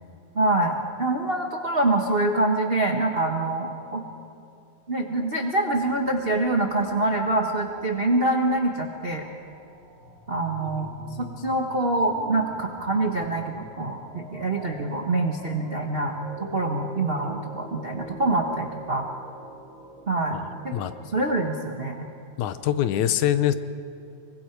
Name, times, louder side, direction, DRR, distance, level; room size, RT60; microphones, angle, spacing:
voice 1, 0.3-4.0 4.9-9.3 10.3-10.9 11.4-16.2 16.5-19.1 20.1-20.7 21.1-22.1, right 2 dB, 65° right, 1 dB, 0.5 m, -25 dB
sound 1, 5.7-21.7, equal, 20° right, 2.7 m, -45 dB
voice 2, 22.4-23.5, left 11 dB, 80° left, 11 dB, 2.2 m, -23 dB
25.5 x 23.5 x 4.6 m, 2.6 s
omnidirectional pair, 3.4 m